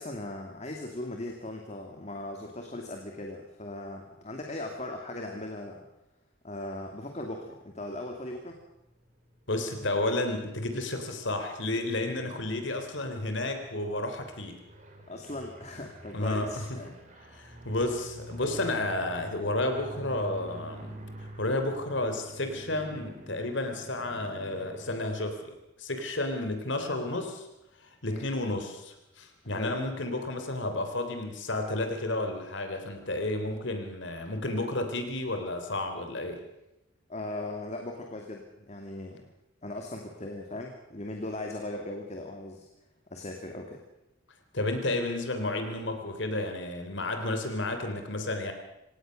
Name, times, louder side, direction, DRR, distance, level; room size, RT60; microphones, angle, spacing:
voice 1, 0.0-5.9 6.4-8.6 15.1-16.9 28.1-28.3 29.5-29.8 37.1-39.3 39.6-42.7 43.1-43.8, left 1 dB, 35° left, 2 dB, 2.4 m, -38 dB
sound 1, 7.4-25.0, right 1 dB, 40° right, 4.4 m, -48 dB
voice 2, 9.5-14.6 16.1-16.7 17.3-21.0 21.4-25.5 25.8-27.5 27.8-36.4 44.5-48.5, left 2 dB, 65° left, 6 dB, 3.4 m, -31 dB
27.0 x 18.0 x 6.5 m, 0.88 s
head